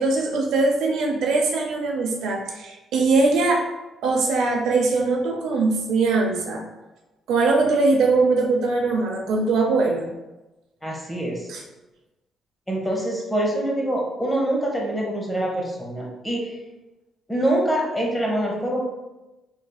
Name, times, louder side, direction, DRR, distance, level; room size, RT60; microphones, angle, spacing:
voice 1, 0.0-3.7 4.0-6.6 7.3-10.1 11.5-11.6, right 3 dB, 85° right, 1 dB, 0.6 m, -21 dB
voice 2, 10.8-11.5 12.7-16.6 17.3-18.8, right 1 dB, 10° left, -2 dB, 1.0 m, -25 dB
3.5 x 3.2 x 2.3 m, 1.1 s
cardioid pair, 90°, 0 cm